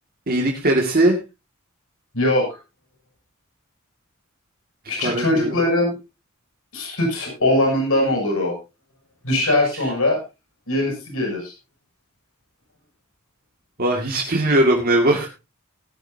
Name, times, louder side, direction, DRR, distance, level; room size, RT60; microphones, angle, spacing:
voice 1, 0.3-1.2 5.0-5.6 13.8-15.3, right 1 dB, 45° right, 0 dB, 2.2 m, -19 dB
voice 2, 2.1-2.6 4.9-5.9 6.7-8.6 9.2-10.2 10.7-11.5, left 1 dB, 70° left, 1 dB, 7.3 m, -21 dB
18.5 x 11.0 x 2.8 m, 0.27 s
head